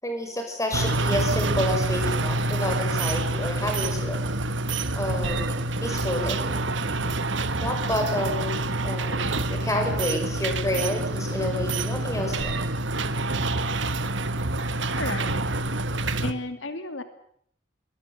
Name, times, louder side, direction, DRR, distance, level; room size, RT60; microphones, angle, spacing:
voice 1, 0.0-4.3 4.9-6.5 7.6-8.6 8.8-12.7, left 1 dB, 15° left, 4 dB, 6.2 m, -29 dB
sound 1, 0.7-16.3, right 2 dB, 75° right, 1.4 m, -27 dB
voice 2, 15.0-15.5 16.2-17.0, left 2 dB, 85° left, 8 dB, 2.4 m, -32 dB
23.0 x 20.0 x 8.3 m, 0.66 s
head